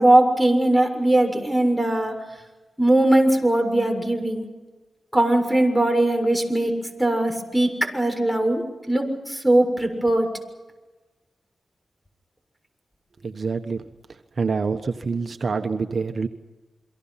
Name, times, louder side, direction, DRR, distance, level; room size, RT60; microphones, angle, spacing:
voice 1, 0.0-2.2 2.8-4.5 5.1-6.7 7.0-10.3, right 1 dB, ahead, 3 dB, 6.8 m, -20 dB
voice 2, 13.2-13.8 14.1-16.3, right 4 dB, 60° right, 7 dB, 1.3 m, -26 dB
29.0 x 24.0 x 5.9 m, 1.2 s
cardioid pair, 55°, 0 cm